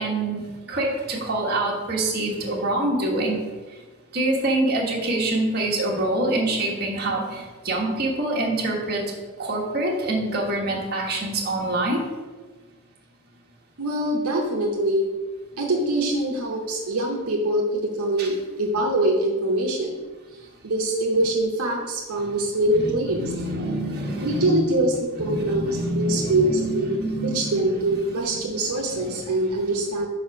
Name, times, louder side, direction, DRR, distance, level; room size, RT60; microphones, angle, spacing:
voice 1, 0.0-3.4 4.1-9.0 9.4-12.0 18.2-18.3 22.8-24.5 25.2-27.8 28.1-28.4 28.9-29.6, right 2 dB, 45° right, -3 dB, 1.4 m, -26 dB
voice 2, 13.8-15.1 15.6-20.0 20.3-23.2 24.2-30.1, right 1 dB, 80° right, -1 dB, 0.9 m, -24 dB
5.1 x 4.2 x 5.7 m, 1.3 s
head